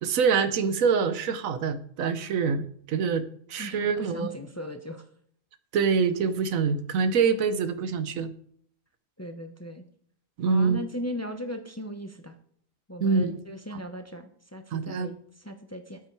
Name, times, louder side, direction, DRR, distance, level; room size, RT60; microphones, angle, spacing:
voice 1, 0.0-4.3 5.7-8.3 10.4-10.8 13.0-13.4 14.7-15.1, right 5 dB, 85° right, 12 dB, 1.2 m, -25 dB
voice 2, 3.6-5.0 9.2-9.9 10.4-12.4 12.9-16.0, equal, 15° left, 7 dB, 0.7 m, -37 dB
8.8 x 8.6 x 4.6 m, 0.62 s
omnidirectional pair, 1.4 m